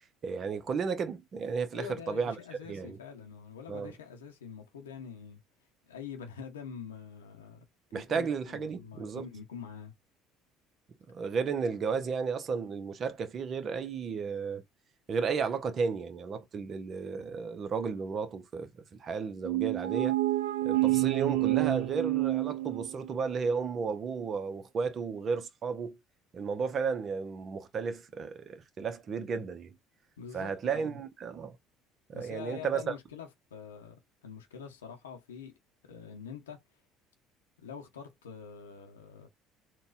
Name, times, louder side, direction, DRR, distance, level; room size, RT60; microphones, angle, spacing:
voice 1, 0.2-2.3 2.7-3.0 3.7-3.9 7.9-9.2 11.1-14.6 15.1-20.1 20.6-26.0 26.3-29.7 30.3-31.6 32.1-32.9, right 5 dB, 45° right, 0.8 m, -33 dB
voice 2, 1.7-5.4 5.9-7.6 7.9-9.9 30.2-31.0 32.1-35.6 35.8-36.6 37.6-39.3, left 7 dB, 85° left, 0.7 m, -45 dB
sound 1, 19.4-23.2, right 18 dB, 75° right, 0.4 m, -28 dB
4.0 x 2.3 x 2.4 m
hypercardioid pair, 65°, 0 cm